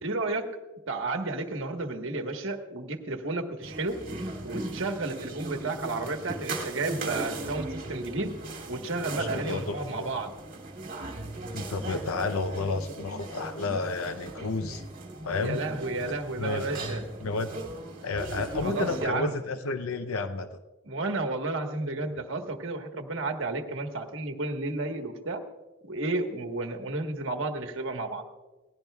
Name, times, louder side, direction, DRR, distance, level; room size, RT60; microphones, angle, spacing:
voice 1, 0.0-0.5 0.9-4.0 4.4-8.3 8.7-10.3 15.3-17.0 18.6-19.3 20.9-25.4 25.8-28.2, right 2 dB, 60° right, 4 dB, 1.3 m, -32 dB
sound 1, 3.6-19.0, right 2 dB, 40° right, 2.2 m, -38 dB
voice 2, 9.2-10.1 11.5-14.8 15.2-15.6 16.4-16.8 17.2-17.5 18.0-20.6, left 3 dB, 80° left, 9 dB, 0.6 m, -31 dB
18.5 x 16.0 x 2.3 m, 1.2 s
head